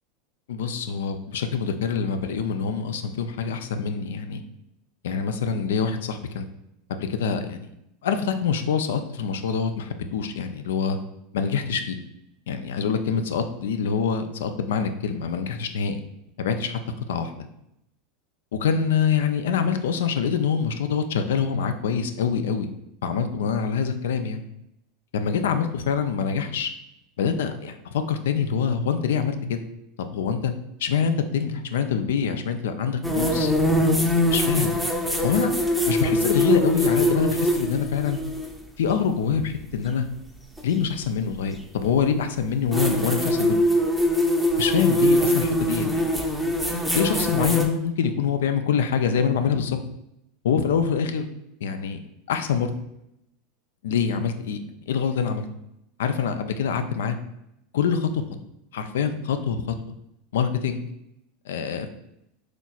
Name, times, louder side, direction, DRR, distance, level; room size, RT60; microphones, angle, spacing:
voice 1, 0.5-4.4 5.0-6.5 6.9-7.7 8.0-11.0 11.3-12.0 12.5-16.0 16.4-16.8 17.1-17.5 18.5-22.7 23.0-24.4 25.1-26.7 27.2-29.6 30.0-30.5 30.8-33.5 34.2-34.7 35.2-35.5 35.9-38.2 38.8-40.1 40.6-43.6 44.6-46.2 46.9-49.8 50.4-51.3 51.6-52.0 52.3-52.7 53.8-54.6 54.9-55.5 56.0-57.2 57.7-58.2 58.7-59.8 60.3-60.8 61.5-61.9, left 6 dB, 80° left, 8 dB, 0.4 m, -25 dB
sound 1, 33.0-38.5 40.6-40.7 42.7-47.7, equal, ahead, 0.6 m, -22 dB
4.1 x 3.0 x 2.4 m, 0.80 s
hypercardioid pair, 95°, 0 cm